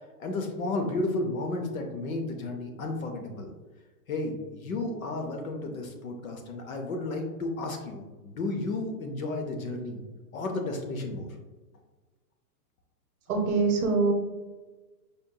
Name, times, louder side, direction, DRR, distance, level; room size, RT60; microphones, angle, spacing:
voice 1, 0.2-3.5 4.1-10.0 10.3-11.3, left 2 dB, 60° left, 4 dB, 0.7 m, -33 dB
voice 2, 13.3-14.1, right 4 dB, 65° right, 3 dB, 0.7 m, -24 dB
5.2 x 2.6 x 2.2 m, 1.2 s
hypercardioid pair, 175°, 47 cm